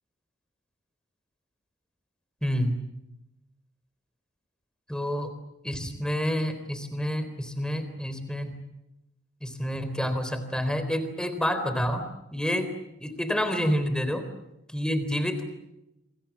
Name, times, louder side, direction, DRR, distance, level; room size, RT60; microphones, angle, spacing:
voice 1, 2.4-2.8 4.9-5.3 5.6-8.6 9.4-12.1 12.3-12.7 13.0-14.2 14.7-15.4, equal, 5° left, 10 dB, 3.8 m, -28 dB
28.0 x 26.0 x 7.2 m, 0.90 s
head